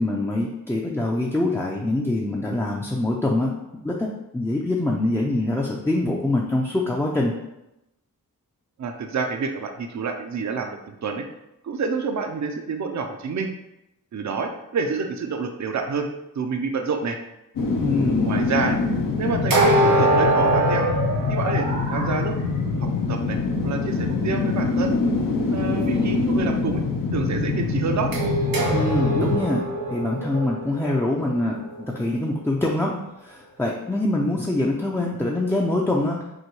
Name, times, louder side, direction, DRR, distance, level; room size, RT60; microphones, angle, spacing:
voice 1, 0.0-3.5 3.8-7.3 17.8-18.4 28.7-29.6 29.9-32.9 33.2-36.3, left 2 dB, 5° left, -2 dB, 0.4 m, -24 dB
voice 2, 8.8-11.3 11.6-13.5 14.1-16.1 16.3-17.2 18.2-18.8 19.2-20.9 21.3-22.3 22.8-23.4 23.6-24.9 25.5-26.8 27.1-28.1, right 5 dB, 55° right, 5 dB, 0.5 m, -28 dB
sound 1, 17.6-30.6 31.0-31.1, left 4 dB, 65° left, 0.6 m, -25 dB
sound 2, 19.5-22.2 28.1-32.1, right 1 dB, 75° right, 1.1 m, -23 dB
6.2 x 2.2 x 3.0 m, 0.89 s
wide cardioid pair, 100°, 35 cm